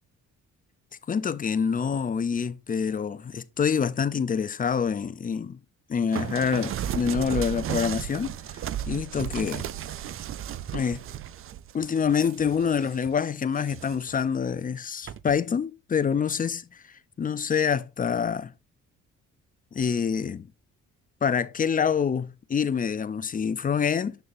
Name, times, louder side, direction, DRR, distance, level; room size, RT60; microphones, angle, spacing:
voice 1, 1.1-5.6 5.9-8.3 8.9-9.7 10.7-11.0 11.7-16.8 17.2-18.5 19.7-20.5 21.2-24.2, left 6 dB, 30° left, 0.5 m, -26 dB
sound 1, 6.1-13.1 13.6-14.2 15.1-15.4, right 11 dB, 45° right, 0.4 m, -34 dB
7.5 x 6.2 x 2.6 m
cardioid pair, 90°, 30 cm